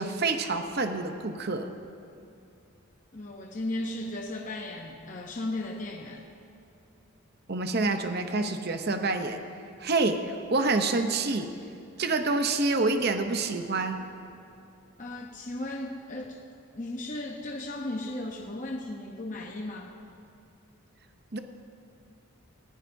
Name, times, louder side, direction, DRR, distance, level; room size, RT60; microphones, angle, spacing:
voice 1, 0.0-1.7 7.5-9.4 9.8-11.5 12.0-14.0 21.3-21.4, right 3 dB, 45° right, 7 dB, 0.7 m, -27 dB
voice 2, 3.1-6.3 15.0-16.4 16.7-19.9, left 1 dB, 35° left, 0 dB, 0.7 m, -36 dB
19.0 x 16.0 x 2.7 m, 2.6 s
head